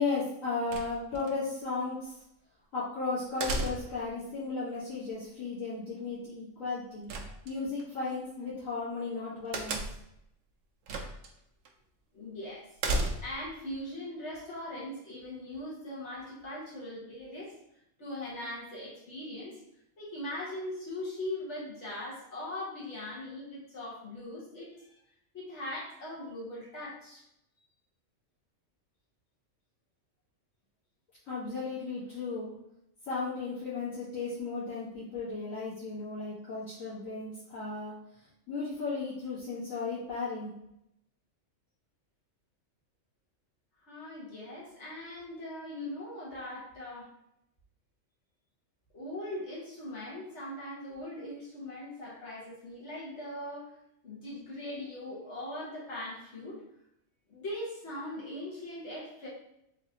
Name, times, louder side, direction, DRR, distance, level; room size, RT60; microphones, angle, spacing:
voice 1, 0.0-2.2 2.7-7.1 7.5-9.8 31.3-32.5 33.1-37.9 38.5-40.5, left 4 dB, 80° left, -11 dB, 1.7 m, -35 dB
sound 1, 0.7-1.3 3.4-4.1 7.1-7.8 9.5-10.2 10.9-11.3 11.7-11.8 12.8-13.5, right 2 dB, 70° right, 0.9 m, -33 dB
voice 2, 0.9-1.3 7.3-7.4 12.1-12.7 13.2-17.5 18.0-19.6 20.0-25.0 25.3-27.2 43.8-47.1 48.9-53.7 54.0-56.6 57.3-59.3, left 1 dB, 60° left, -6 dB, 1.6 m, -40 dB
3.9 x 2.9 x 2.8 m, 0.79 s
omnidirectional pair, 1.4 m